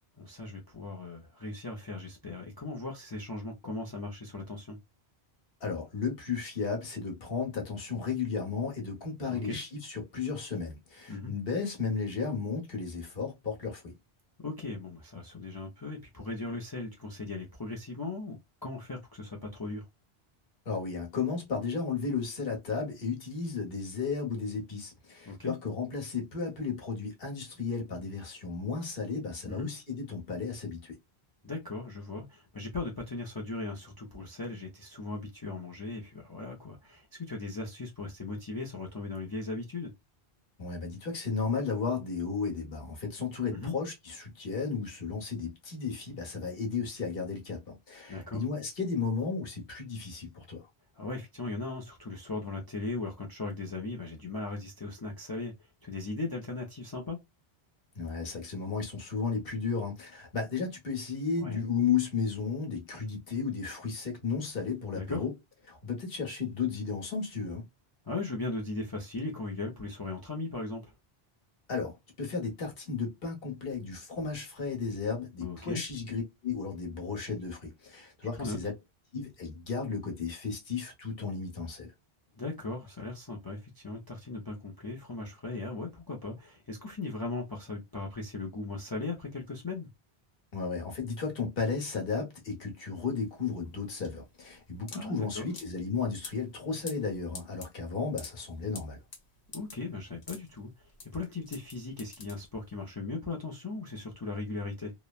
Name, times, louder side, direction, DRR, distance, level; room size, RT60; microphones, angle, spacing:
voice 1, 0.2-4.8 9.3-9.6 11.1-11.3 14.4-19.8 25.3-25.5 29.5-29.7 31.4-39.9 43.5-43.7 48.1-48.4 50.9-57.2 61.4-61.6 64.9-65.2 68.0-70.9 75.4-75.8 78.3-78.6 82.4-89.9 94.9-95.5 99.5-104.9, left 3 dB, 30° left, 0.5 m, -38 dB
voice 2, 5.6-13.9 20.6-31.0 40.6-50.7 57.9-65.3 65.7-67.7 71.7-78.7 79.1-81.9 90.5-99.0, left 5 dB, 65° left, 1.3 m, -34 dB
sound 1, 93.0-102.9, left 4 dB, 85° left, 1.2 m, -48 dB
3.0 x 2.1 x 2.3 m
omnidirectional pair, 1.1 m